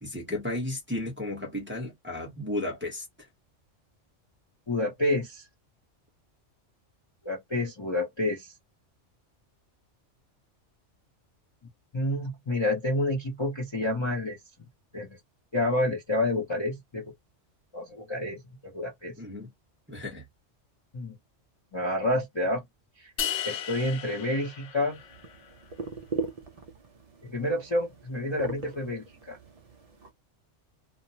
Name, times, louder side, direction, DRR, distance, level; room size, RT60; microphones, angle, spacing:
voice 1, 0.0-3.3 19.2-19.5 19.9-20.3, left 1 dB, 10° right, 0.8 m, -34 dB
voice 2, 4.7-5.4 7.2-8.5 11.9-14.4 14.9-15.1 15.5-17.0 17.7-19.1 20.9-21.2 21.7-22.6 23.0-23.1 23.4-25.0 27.2-29.4, left 1 dB, 30° left, 0.7 m, -29 dB
sound 1, 23.2-25.5, left 10 dB, 75° left, 0.9 m, -35 dB
sound 2, 24.9-30.1, right 3 dB, 55° right, 0.4 m, -40 dB
2.4 x 2.1 x 2.7 m
omnidirectional pair, 1.2 m